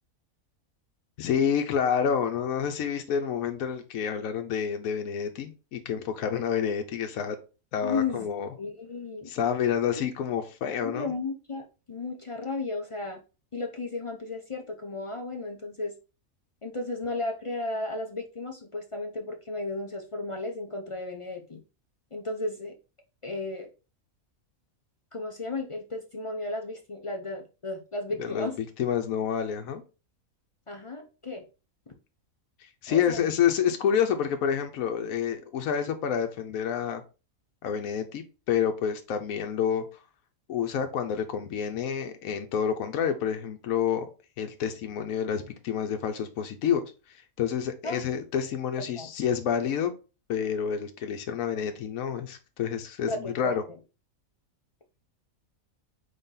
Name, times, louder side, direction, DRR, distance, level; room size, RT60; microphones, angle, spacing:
voice 1, 1.2-7.4 7.7-8.5 9.3-11.1 28.2-29.8 32.6-37.0 37.6-39.8 40.5-44.1 44.4-49.9 50.3-53.6, left 8 dB, 85° left, 6 dB, 1.1 m, -28 dB
voice 2, 7.8-8.3 8.5-9.3 10.0-10.1 10.8-13.2 13.5-15.9 16.6-21.6 22.1-22.7 23.2-23.7 25.1-28.6 30.7-31.4 31.9-32.0 32.9-33.3 47.8-48.0 48.9-49.1 53.1-53.6, left 3 dB, 45° left, 2 dB, 0.4 m, -34 dB
4.1 x 3.4 x 3.7 m, 0.31 s
omnidirectional pair, 1.4 m